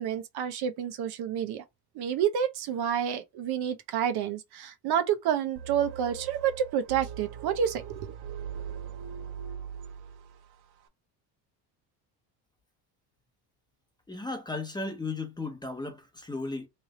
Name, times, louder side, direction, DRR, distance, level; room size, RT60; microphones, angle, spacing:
voice 1, 0.0-1.6 1.9-8.0, right 9 dB, 55° right, 0.8 m, -29 dB
sound 1, 5.6-10.6, right 8 dB, 80° right, 1.2 m, -40 dB
voice 2, 14.1-16.7, left 3 dB, 10° left, 0.9 m, -35 dB
3.3 x 2.7 x 4.1 m
cardioid pair, 115°, 47 cm